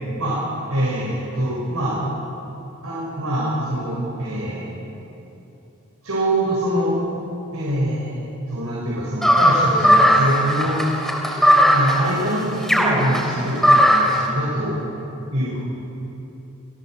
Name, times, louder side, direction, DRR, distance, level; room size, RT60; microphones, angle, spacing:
voice 1, 0.7-2.0 2.8-4.8 6.0-7.0 7.5-10.8 11.7-14.7 15.3-15.6, right 1 dB, 85° right, -6 dB, 5.4 m, -24 dB
sound 1, 9.2-14.2, equal, ahead, 3.5 m, -17 dB
25.0 x 16.0 x 7.6 m, 3.0 s
head